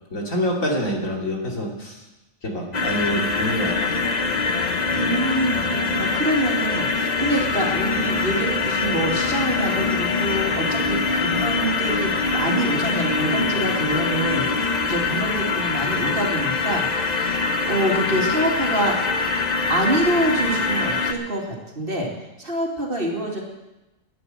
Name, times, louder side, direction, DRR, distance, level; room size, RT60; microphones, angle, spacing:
voice 1, 0.1-2.0 2.4-4.0, equal, 65° left, -1 dB, 3.2 m, -26 dB
sound 1, 2.7-21.1, left 4 dB, 35° left, 1.0 m, -23 dB
voice 2, 4.9-19.0 19.7-22.1 22.4-23.4, right 1 dB, 40° right, -1 dB, 2.8 m, -26 dB
12.0 x 10.5 x 8.8 m, 1.0 s
omnidirectional pair, 1.5 m